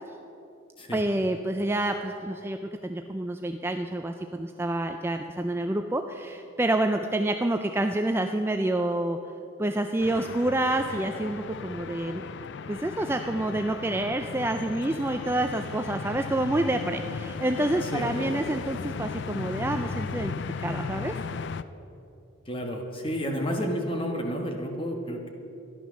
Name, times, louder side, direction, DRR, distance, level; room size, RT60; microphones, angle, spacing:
voice 1, 0.9-9.2 9.6-12.2 12.7-20.3 20.6-21.2 23.3-23.4, right 1 dB, 10° right, 5 dB, 0.3 m, -28 dB
sound 1, 10.0-21.6, left 5 dB, 55° left, 0.4 m, -36 dB
voice 2, 17.8-18.4 22.5-25.3, equal, 25° left, 3 dB, 1.4 m, -31 dB
13.5 x 11.0 x 6.4 m, 2.8 s
head